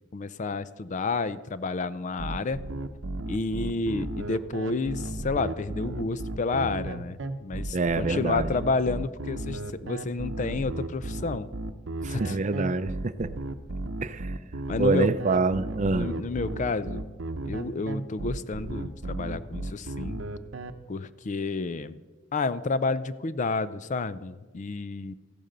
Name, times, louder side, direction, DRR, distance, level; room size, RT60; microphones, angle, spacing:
voice 1, 0.1-2.6 3.3-11.5 12.1-12.4 14.7-15.1 15.9-17.0 17.4-20.2 20.9-22.0 22.3-25.1, left 3 dB, 40° left, 15 dB, 0.4 m, -30 dB
sound 1, 2.2-20.7, right 2 dB, 70° right, 0.8 m, -34 dB
voice 2, 7.7-8.5 12.0-13.3 14.0-14.3 14.8-16.1, right 3 dB, 40° right, 13 dB, 0.5 m, -26 dB
14.5 x 8.9 x 6.7 m, 1.3 s
head